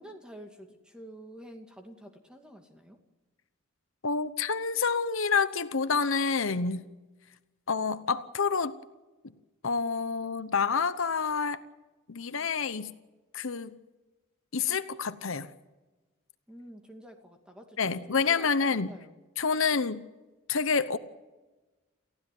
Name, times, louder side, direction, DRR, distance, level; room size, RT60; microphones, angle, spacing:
voice 1, 0.0-3.0 16.5-19.2, equal, 5° right, 4 dB, 2.4 m, -49 dB
voice 2, 4.0-6.9 7.7-8.8 9.6-11.6 12.1-12.9 13.3-13.7 14.5-15.5 17.8-18.9 19.4-20.0 20.5-21.0, left 5 dB, 65° left, 12 dB, 0.9 m, -28 dB
29.5 x 15.5 x 9.4 m, 1.2 s
head